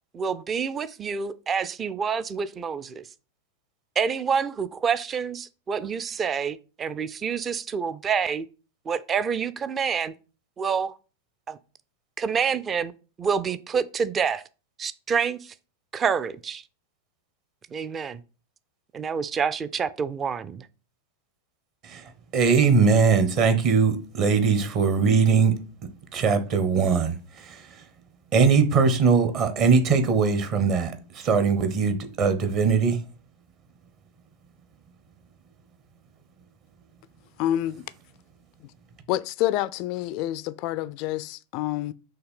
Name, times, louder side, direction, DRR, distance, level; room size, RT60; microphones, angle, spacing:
voice 1, 0.1-3.0 4.0-8.5 8.9-10.1 10.6-11.0 11.5-11.6 12.2-12.9 13.2-14.4 14.8-15.5 15.9-16.6 17.7-18.2 18.9-20.7, right 6 dB, 20° right, 0.5 m, -27 dB
voice 2, 22.3-25.6 26.1-27.8 28.3-33.0, right 5 dB, 40° right, 1.1 m, -21 dB
voice 3, 37.4-37.8 39.1-41.9, left 13 dB, 45° left, 0.3 m, -27 dB
5.7 x 3.2 x 5.5 m
figure-of-eight pair, 90°, 0 cm